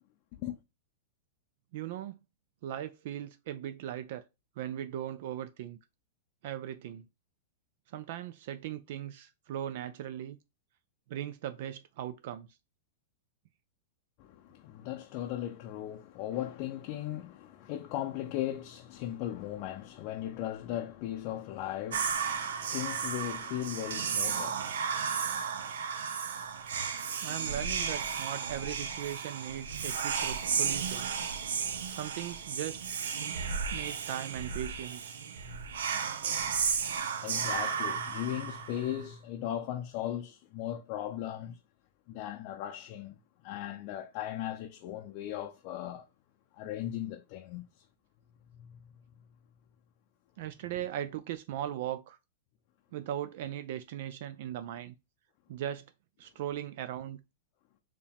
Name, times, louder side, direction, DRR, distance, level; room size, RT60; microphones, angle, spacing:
voice 1, 1.7-2.2 2.6-4.2 4.6-5.8 6.4-7.0 7.9-10.4 11.1-12.5 27.2-31.1 32.0-32.8 33.7-35.1 50.4-52.2 52.9-54.9 55.5-55.8 56.2-57.2, right 11 dB, 55° right, 0.4 m, -38 dB
voice 2, 14.2-24.9 28.6-28.7 35.5-35.6 37.2-41.6 42.1-43.2 43.4-46.1 46.5-47.7 48.6-48.8, left 12 dB, 45° left, 0.5 m, -38 dB
Whispering, 21.9-39.0, right 6 dB, 90° right, 0.7 m, -34 dB
4.6 x 3.0 x 3.5 m
supercardioid pair, 145°, 0 cm